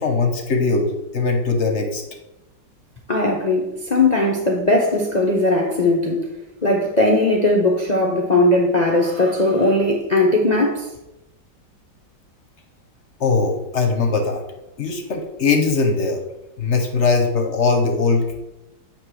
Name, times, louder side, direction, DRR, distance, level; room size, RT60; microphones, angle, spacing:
voice 1, 0.0-2.0 13.2-14.4 14.8-16.2 16.6-18.2, left 4 dB, 50° left, 4 dB, 0.8 m, -20 dB
voice 2, 3.1-6.3 6.6-10.9, left 2 dB, 90° left, -1 dB, 0.3 m, -18 dB
8.5 x 3.0 x 6.2 m, 0.93 s
omnidirectional pair, 2.1 m